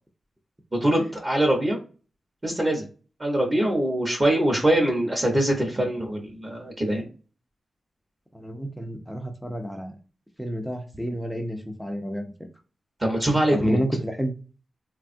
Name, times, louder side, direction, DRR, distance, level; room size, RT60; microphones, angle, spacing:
voice 1, 0.7-1.8 2.4-2.8 3.2-7.1 13.0-13.8, right 1 dB, 25° right, 1 dB, 0.9 m, -23 dB
voice 2, 8.3-9.9 10.4-12.5 13.5-14.3, equal, ahead, 4 dB, 0.6 m, -29 dB
3.4 x 2.3 x 2.6 m, 0.35 s
wide cardioid pair, 110°, 0 cm